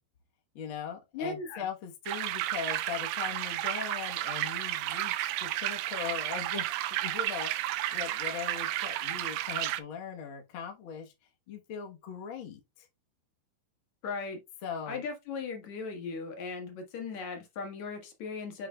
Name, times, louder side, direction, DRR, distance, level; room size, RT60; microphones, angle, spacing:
voice 1, 0.5-11.1 11.5-12.9 14.6-15.0, left 7 dB, 85° left, 1.1 m, -40 dB
voice 2, 1.1-1.7 14.0-14.4 14.9-18.7, left 4 dB, 55° left, 2.7 m, -37 dB
sound 1, 2.1-9.8, right 15 dB, 80° right, 2.1 m, -32 dB
8.5 x 5.9 x 2.3 m
omnidirectional pair, 4.3 m